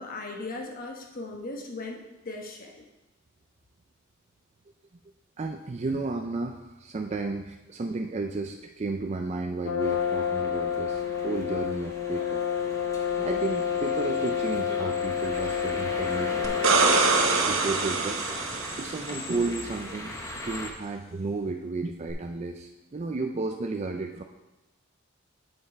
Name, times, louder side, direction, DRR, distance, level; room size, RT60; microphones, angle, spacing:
voice 1, 0.0-2.8, left 2 dB, 45° left, 2 dB, 1.1 m, -38 dB
voice 2, 5.4-12.4 13.2-16.5 17.4-18.2 18.8-20.1 20.4-24.2, right 3 dB, 30° right, 4 dB, 0.4 m, -33 dB
Brass instrument, 9.6-17.4, left 7 dB, 85° left, 0.5 m, -29 dB
sound 1, 9.8-20.7, left 1 dB, 15° left, 1.0 m, -39 dB
sound 2, 16.4-19.3 22.1-22.2, right 4 dB, 70° right, 0.9 m, -24 dB
8.7 x 5.5 x 4.5 m, 1.0 s
head